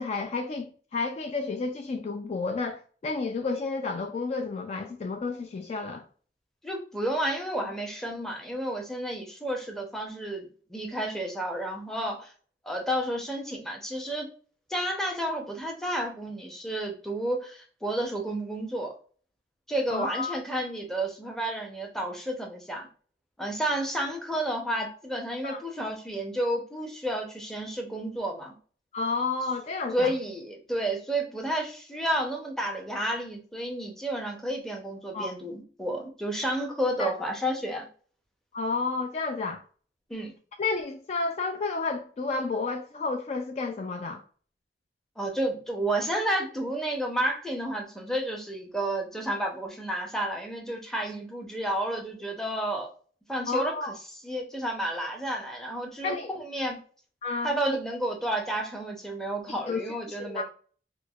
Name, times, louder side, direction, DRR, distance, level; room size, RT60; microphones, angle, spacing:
voice 1, 0.0-6.0 19.9-20.4 25.4-25.6 28.9-30.1 35.1-35.3 37.0-37.1 38.5-39.6 40.6-44.2 53.5-54.0 56.0-56.3 57.2-57.8 59.5-60.4, left 4 dB, 40° left, 0.3 m, -31 dB
voice 2, 6.6-12.3 12.6-14.3 14.7-19.0 19.7-22.9 23.4-28.5 29.9-37.9 40.1-40.3 45.2-52.9 53.3-53.7 54.2-56.8 57.4-60.4, right 1 dB, 5° left, 0.6 m, -31 dB
4.5 x 2.0 x 2.3 m
head